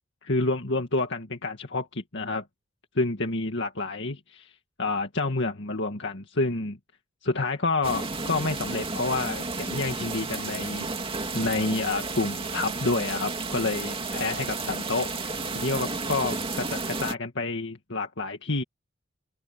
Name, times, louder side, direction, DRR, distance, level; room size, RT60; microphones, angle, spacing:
voice 1, 0.2-2.4 3.0-4.5 4.8-6.8 7.2-11.1 11.3-18.6, left 3 dB, 65° left, 2.1 m, -29 dB
sound 1, 7.8-17.1, right 3 dB, 30° right, 2.6 m, -32 dB
open air
head